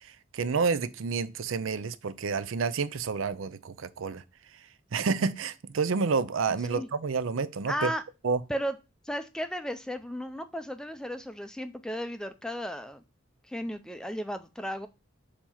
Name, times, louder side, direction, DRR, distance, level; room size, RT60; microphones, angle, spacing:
voice 1, 0.0-4.2 4.9-7.9 8.2-8.4, right 5 dB, 80° right, 0.5 m, -29 dB
voice 2, 7.7-8.0 8.5-8.7 9.0-13.0 13.5-14.9, equal, 5° left, 0.4 m, -34 dB
6.7 x 2.8 x 5.6 m
head